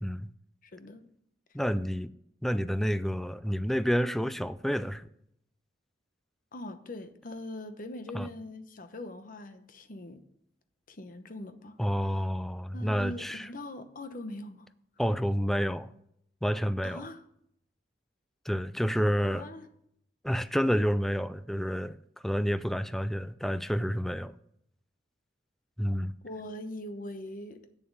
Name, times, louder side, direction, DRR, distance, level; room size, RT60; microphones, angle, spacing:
voice 1, 0.0-0.3 1.5-2.1 2.4-5.1 8.1-8.3 11.8-13.5 15.0-15.9 16.4-17.0 18.5-19.5 20.2-21.9 22.2-24.3 25.8-26.1, equal, ahead, 0.3 m, -29 dB
voice 2, 0.6-1.1 6.5-10.2 10.9-12.2 12.7-14.7 16.8-17.2 19.2-19.7 26.2-27.6, left 1 dB, 50° left, 0.9 m, -42 dB
8.5 x 7.1 x 5.5 m
head